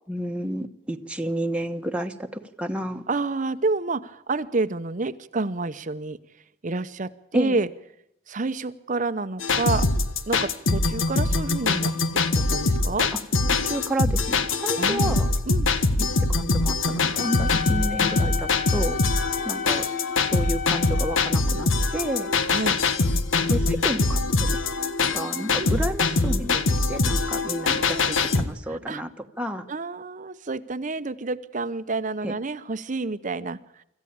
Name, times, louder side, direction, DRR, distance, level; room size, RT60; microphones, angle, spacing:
voice 1, 0.1-3.0 7.3-7.6 13.1-13.2 13.6-15.3 16.0-19.9 20.2-22.3 23.5-24.6 25.1-29.1 29.4-29.7 32.2-32.3, right 1 dB, 5° right, 3 dB, 1.2 m, -31 dB
voice 2, 3.1-6.2 6.6-7.7 8.3-9.9 10.3-13.1 14.8-15.2 15.5-15.7 22.5-22.8 25.6-25.8 27.6-28.3 28.7-29.0 29.7-33.8, right 3 dB, 40° right, 12 dB, 0.8 m, -29 dB
sound 1, 9.4-28.4, left 3 dB, 85° left, 1.5 m, -23 dB
Wind instrument woodwind instrument, 17.1-21.4, left 6 dB, 40° left, 1.4 m, -32 dB
26.0 x 14.5 x 8.7 m, 0.78 s
head